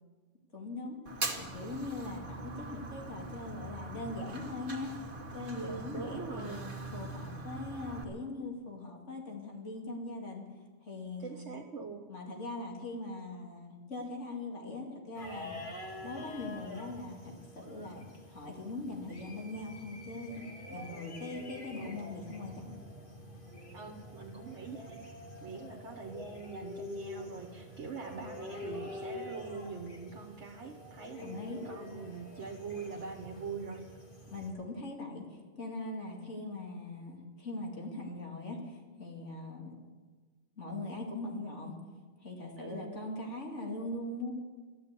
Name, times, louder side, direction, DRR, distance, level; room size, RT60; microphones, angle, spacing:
voice 1, 0.5-1.0 1.4-4.9 5.3-10.5 10.8-11.5 12.1-15.6 16.0-20.4 20.7-22.7 25.5-25.7 31.2-31.6 34.3-39.7 40.6-41.8 42.2-44.3, left 2 dB, 80° left, 0 dB, 2.7 m, -41 dB
Fire, 1.1-8.0, right 2 dB, 45° right, 1.8 m, -42 dB
voice 2, 5.6-6.6 11.2-12.1 23.7-25.0 25.4-33.8 42.6-43.1, right 4 dB, 70° right, 3 dB, 1.6 m, -43 dB
sound 1, 15.1-34.5, left 1 dB, 45° left, 2.5 m, -46 dB
13.5 x 12.5 x 8.2 m, 1.4 s
omnidirectional pair, 1.2 m